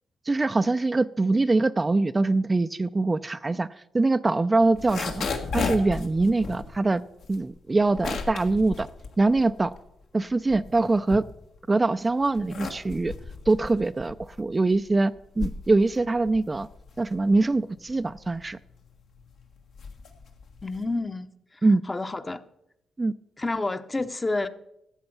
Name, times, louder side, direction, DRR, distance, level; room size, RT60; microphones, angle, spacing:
voice 1, 0.3-3.7 3.9-5.3 5.5-7.0 7.3-8.9 9.2-9.7 10.1-11.2 11.7-13.1 13.5-16.7 17.0-18.6 21.6-21.8 23.0-23.1, right 3 dB, 25° right, 11 dB, 0.4 m, -23 dB
sound 1, 4.6-9.9 10.3-11.7 12.2-21.0, left 4 dB, 75° left, 1.6 m, -35 dB
voice 2, 20.6-21.6 21.9-22.4 23.4-24.5, left 2 dB, 25° left, 10 dB, 0.8 m, -29 dB
13.0 x 7.8 x 5.7 m, 0.82 s
cardioid pair, 65°, 0 cm